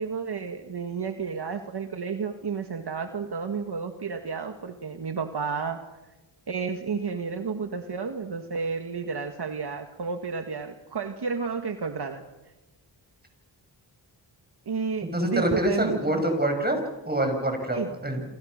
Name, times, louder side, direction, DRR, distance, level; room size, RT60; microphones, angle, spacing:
voice 1, 0.0-5.8 6.5-12.2 14.7-16.2 17.7-17.9, right 5 dB, 60° right, 6 dB, 1.9 m, -31 dB
voice 2, 15.0-16.8 17.0-18.2, right 1 dB, 20° right, 5 dB, 6.6 m, -26 dB
28.0 x 27.0 x 6.6 m, 1.1 s
wide cardioid pair, 85°, 44 cm